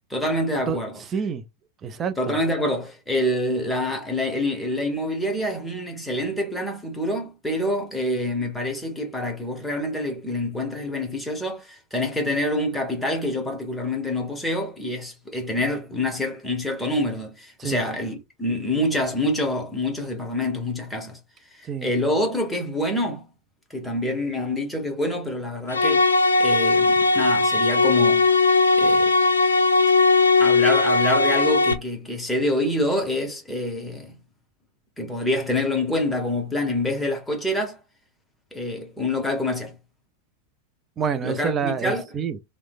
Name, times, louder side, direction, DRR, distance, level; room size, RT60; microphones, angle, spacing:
voice 1, 0.1-1.0 2.2-21.2 21.5-23.3 23.7-26.1 26.4-28.3 28.8-29.2 30.4-34.2 35.0-37.8 38.5-39.8 41.2-42.0, left 1 dB, 5° left, 0.9 m, -26 dB
voice 2, 1.1-1.4 1.8-2.3 17.6-17.8 21.6-21.9 41.0-42.4, right 6 dB, 25° right, 0.4 m, -27 dB
sound 1, 25.7-31.7, left 3 dB, 75° left, 0.4 m, -18 dB
3.0 x 2.1 x 2.3 m
figure-of-eight pair, 90°, 0 cm